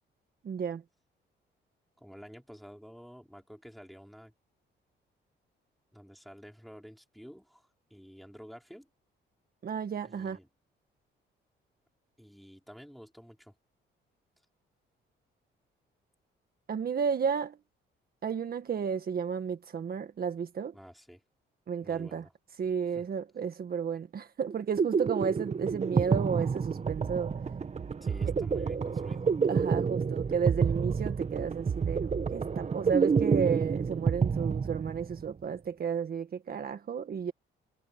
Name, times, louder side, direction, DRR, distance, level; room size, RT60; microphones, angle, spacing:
voice 1, 0.4-0.8 9.6-10.4 16.7-17.6 18.2-20.7 21.7-22.2 22.6-27.3 28.2-28.3 29.4-37.3, right 7 dB, 50° right, 1.7 m, -32 dB
voice 2, 2.0-4.3 5.9-8.9 10.0-10.5 12.2-13.6 20.7-21.2 21.8-22.3 22.9-23.1 28.0-29.3, equal, ahead, 5.0 m, -50 dB
sound 1, 24.5-35.3, right 5 dB, 35° right, 1.4 m, -29 dB
cardioid pair, 90°, 20 cm